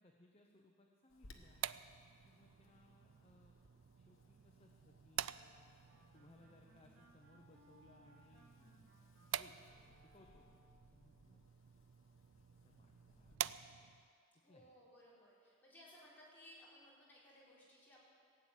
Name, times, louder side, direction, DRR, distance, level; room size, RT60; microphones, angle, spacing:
voice 1, 0.0-1.7 2.2-3.6 3.9-5.2 6.1-9.6 9.8-11.5 12.3-14.0 14.4-14.7, left 1 dB, 30° left, 1 dB, 0.8 m, -67 dB
Wind, 1.1-13.4, left 2 dB, 75° left, 1.2 m, -68 dB
sound 1, 1.2-14.1, right 11 dB, 65° right, 0.3 m, -49 dB
sound 2, 5.3-10.8, equal, 85° right, 4.1 m, -69 dB
voice 2, 14.4-18.0, equal, 10° left, -8 dB, 4.4 m, -61 dB
17.0 x 7.6 x 9.0 m, 2.3 s
head